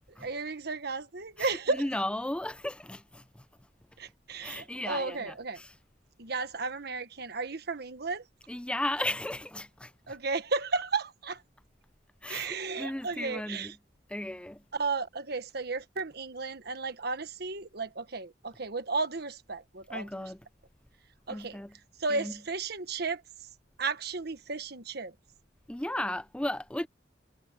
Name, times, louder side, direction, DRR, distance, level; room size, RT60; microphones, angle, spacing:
voice 1, 0.2-1.9 4.0-5.6 6.2-8.2 10.1-11.4 12.3-13.8 14.7-20.3 21.3-21.6 22.0-23.2 23.8-25.1, right 4 dB, 60° right, 1.4 m, -34 dB
voice 2, 1.8-3.4 4.4-5.7 8.5-9.9 12.2-13.7 14.1-14.6 19.9-20.4 21.3-21.7 22.1-22.3 25.7-26.9, left 1 dB, 5° left, 0.5 m, -35 dB
head